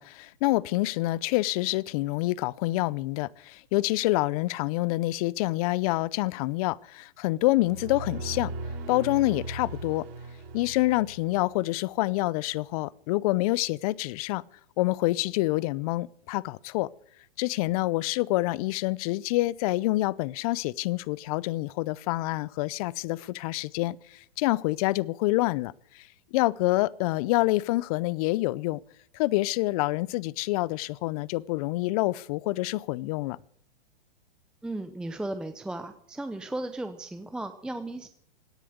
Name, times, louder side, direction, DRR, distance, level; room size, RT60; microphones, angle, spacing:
voice 1, 0.0-8.5 8.9-10.0 10.5-14.4 14.8-16.9 17.4-28.8 29.1-33.4, left 19 dB, 40° left, 0.6 m, -27 dB
sound 1, 7.4-11.8, right 2 dB, 45° right, 4.7 m, -38 dB
voice 2, 34.6-38.1, right 2 dB, 5° right, 0.6 m, -35 dB
17.5 x 10.5 x 7.9 m
hypercardioid pair, 135°, 30 cm